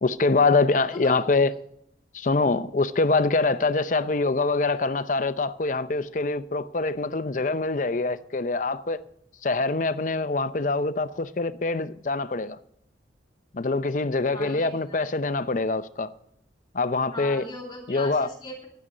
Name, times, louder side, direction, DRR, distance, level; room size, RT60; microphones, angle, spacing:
voice 1, 0.0-1.5 2.1-9.0 9.4-12.6 13.5-16.1 16.7-17.4 17.9-18.3, left 3 dB, 45° left, 0.5 m, -24 dB
voice 2, 14.3-15.1 17.1-18.7, left 2 dB, 25° left, 2.7 m, -39 dB
11.0 x 9.9 x 6.5 m
head